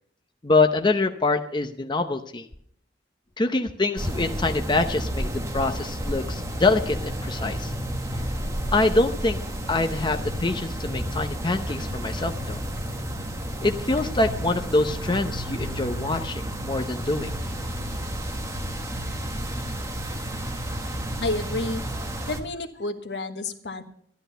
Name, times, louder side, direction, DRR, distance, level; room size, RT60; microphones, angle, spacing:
voice 1, 0.4-2.5 3.4-7.7 8.2-8.3 8.7-9.4 9.7-12.6 13.6-17.3, left 2 dB, 25° left, 6 dB, 0.7 m, -25 dB
sound 1, 4.0-22.4, equal, 20° right, 1.5 m, -31 dB
voice 2, 21.2-21.8 22.3-23.8, left 2 dB, 75° left, 7 dB, 1.3 m, -30 dB
13.0 x 11.5 x 5.6 m, 0.65 s
head